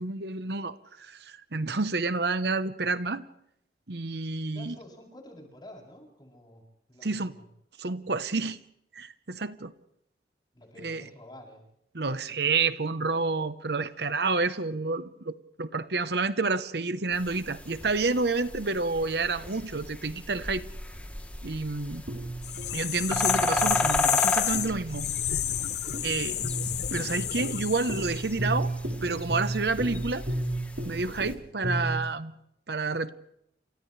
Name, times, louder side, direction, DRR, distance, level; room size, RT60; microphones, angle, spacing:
voice 1, 0.0-3.2 3.9-4.8 7.0-7.3 7.8-8.6 8.9-9.7 10.8-11.0 11.9-20.6 21.4-22.0 22.7-25.4 26.0-26.4 26.9-28.7 29.0-30.2 30.8-32.3 32.7-33.1, right 3 dB, 65° right, 12 dB, 1.0 m, -29 dB
voice 2, 4.5-6.6 6.9-7.5 10.5-11.6, left 1 dB, 25° left, -1 dB, 7.9 m, -49 dB
sound 1, 17.1-31.4, left 1 dB, 10° left, 3.1 m, -35 dB
sound 2, 22.1-32.0, right 1 dB, 85° right, 5.2 m, -35 dB
sound 3, 22.4-28.2, left 13 dB, 65° left, 0.7 m, -30 dB
30.0 x 28.0 x 3.3 m, 0.75 s
head